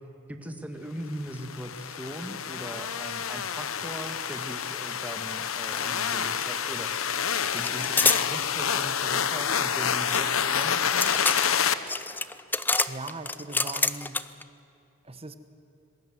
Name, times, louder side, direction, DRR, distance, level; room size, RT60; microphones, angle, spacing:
voice 1, 0.3-6.9 7.5-11.1, equal, 5° right, 5 dB, 1.9 m, -40 dB
sound 1, 1.3-11.7, left 7 dB, 85° left, 1.0 m, -28 dB
sound 2, 5.7-5.9 6.1-6.9 7.6-8.3 9.5-14.4, left 3 dB, 10° left, 0.6 m, -28 dB
sound 3, 7.4-8.0 9.0-9.1 9.4-9.9, equal, 75° right, 7.0 m, -52 dB
voice 2, 12.9-14.2 15.0-15.3, right 3 dB, 30° right, 10 dB, 1.2 m, -39 dB
26.5 x 21.0 x 7.9 m, 2.8 s
head